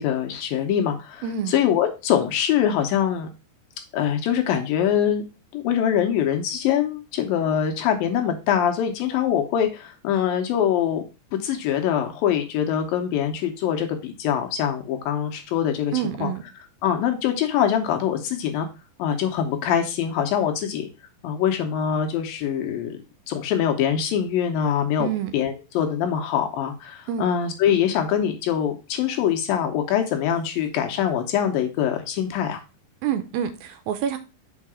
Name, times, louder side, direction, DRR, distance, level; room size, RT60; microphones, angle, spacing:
voice 1, 0.0-3.3 3.9-5.2 5.5-11.0 11.3-15.9 16.2-16.3 16.8-18.7 19.0-20.9 21.2-23.0 23.3-25.1 25.3-32.6, left 9 dB, 75° left, 2.4 m, -23 dB
voice 2, 1.2-1.6 15.9-16.4 25.0-25.3 27.1-27.3 33.0-34.2, right 9 dB, 80° right, 2.3 m, -27 dB
5.5 x 4.6 x 4.8 m
omnidirectional pair, 4.5 m